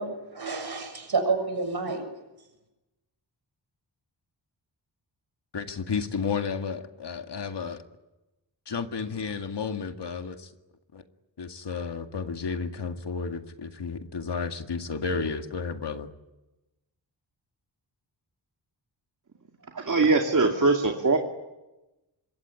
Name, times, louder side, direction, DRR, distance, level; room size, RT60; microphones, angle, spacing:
voice 1, 0.0-2.1, right 4 dB, 55° right, 7.1 m, -29 dB
voice 2, 5.5-7.8 8.7-10.5 10.9-11.0 11.4-16.1, left 5 dB, 65° left, 2.1 m, -32 dB
voice 3, 19.7-21.2, right 3 dB, 40° right, 2.5 m, -22 dB
26.0 x 22.5 x 9.9 m
wide cardioid pair, 125°, 45 cm